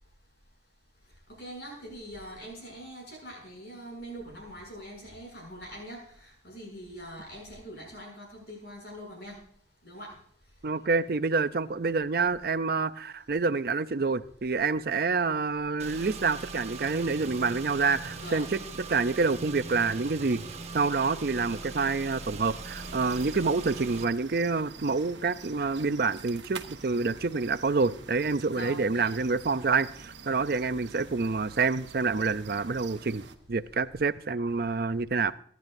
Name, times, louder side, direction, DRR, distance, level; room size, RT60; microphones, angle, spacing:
voice 1, 1.3-9.4 9.8-10.2 18.2-18.5 28.5-29.1, equal, 60° left, 7.4 m, -43 dB
voice 2, 10.6-18.5 18.9-20.4 20.7-33.2 33.5-35.3, right 4 dB, 55° right, 0.5 m, -27 dB
Car / Engine, 15.8-24.0, right 3 dB, 35° right, 1.1 m, -41 dB
sound 1, 22.4-33.4, right 5 dB, 80° right, 1.1 m, -47 dB
24.5 x 10.5 x 2.7 m
head